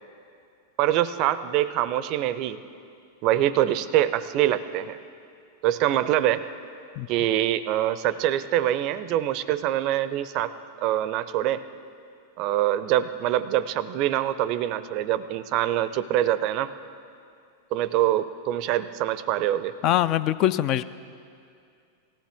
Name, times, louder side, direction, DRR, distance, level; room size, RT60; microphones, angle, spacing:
voice 1, 0.8-2.6 3.2-5.0 5.6-6.4 7.1-10.5 10.8-11.6 12.4-16.7 17.7-19.8, right 12 dB, 40° right, 15 dB, 0.5 m, -24 dB
voice 2, 19.8-20.8, left 13 dB, 40° left, 15 dB, 0.3 m, -22 dB
18.5 x 15.0 x 3.5 m, 2.4 s
figure-of-eight pair, 90°, 0 cm